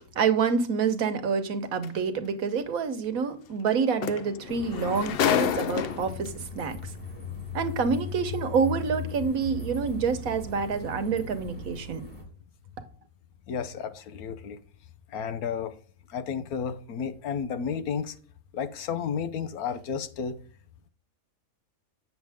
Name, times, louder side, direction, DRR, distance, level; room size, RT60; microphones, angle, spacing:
voice 1, 0.0-6.8 7.5-12.0, right 5 dB, 75° right, 1.3 m, -27 dB
sound 1, 1.8-2.0 3.7-3.8 4.0-6.3 7.2-7.3, left 9 dB, 70° left, 0.5 m, -28 dB
sound 2, 4.5-12.2, left 4 dB, 25° left, 2.8 m, -38 dB
voice 2, 13.5-14.6 15.1-15.7 16.1-18.2 18.5-20.4, left 7 dB, 85° left, 1.3 m, -32 dB
8.1 x 7.0 x 3.4 m
omnidirectional pair, 1.5 m